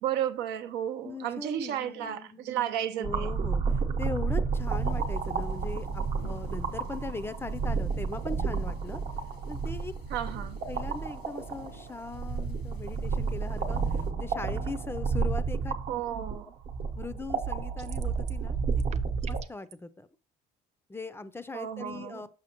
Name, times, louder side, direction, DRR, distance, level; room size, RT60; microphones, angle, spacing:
voice 1, 0.0-3.3 10.1-10.6 15.9-16.5 21.5-22.3, right 10 dB, 85° right, 0.6 m, -33 dB
voice 2, 1.0-2.6 3.0-3.6 4.0-9.0 9.5-9.9 10.7-13.8 14.2-15.7 17.0-18.6 19.2-20.1 20.9-22.3, left 3 dB, 15° left, 0.4 m, -39 dB
sound 1, 3.0-19.4, right 5 dB, 60° right, 0.9 m, -31 dB
sound 2, 4.6-14.1, left 4 dB, 90° left, 1.4 m, -52 dB
sound 3, 17.8-18.5 18.7-19.7, right 8 dB, 40° right, 0.5 m, -47 dB
6.3 x 5.8 x 2.9 m
cardioid pair, 110°, 17 cm